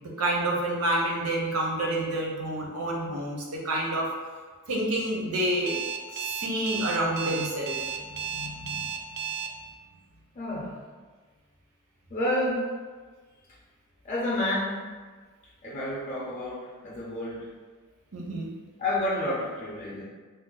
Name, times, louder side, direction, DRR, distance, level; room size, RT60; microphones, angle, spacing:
voice 1, 0.0-4.1 4.7-5.8 6.1-7.8 8.1-8.9 18.1-18.5, right 1 dB, 85° right, -1 dB, 0.7 m, -29 dB
Alarm, 5.7-9.5, right 8 dB, 50° right, 0.3 m, -33 dB
voice 2, 10.4-10.8 12.1-12.7 14.0-14.8 15.6-17.5 18.8-20.0, left 1 dB, 35° left, -6 dB, 0.5 m, -29 dB
2.5 x 2.1 x 3.8 m, 1.5 s
head